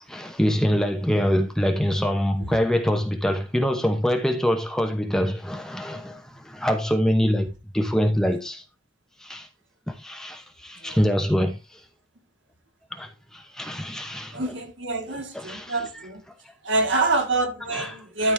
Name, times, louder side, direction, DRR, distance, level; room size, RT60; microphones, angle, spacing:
voice 1, 0.1-7.5 7.7-8.6 9.2-9.5 9.9-11.6 12.9-14.6 15.1-16.0 16.8-16.9 17.7-17.9, equal, 5° left, 0.9 m, -25 dB
voice 2, 14.3-16.2 16.6-18.3, right 2 dB, 75° right, 2.0 m, -26 dB
12.5 x 5.0 x 3.4 m
head